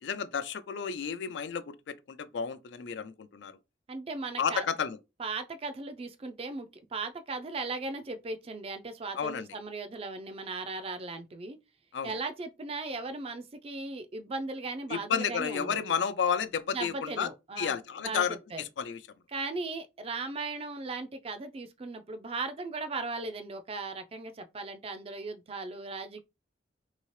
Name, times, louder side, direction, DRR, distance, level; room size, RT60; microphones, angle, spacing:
voice 1, 0.0-3.6 4.4-5.0 9.1-9.5 11.9-12.1 14.9-17.3 17.6-19.0, left 7 dB, 75° left, 0.4 m, -32 dB
voice 2, 3.9-4.7 5.2-11.6 12.0-15.8 16.7-18.6 19.3-26.2, right 3 dB, 30° right, 0.4 m, -37 dB
2.8 x 2.8 x 3.1 m
head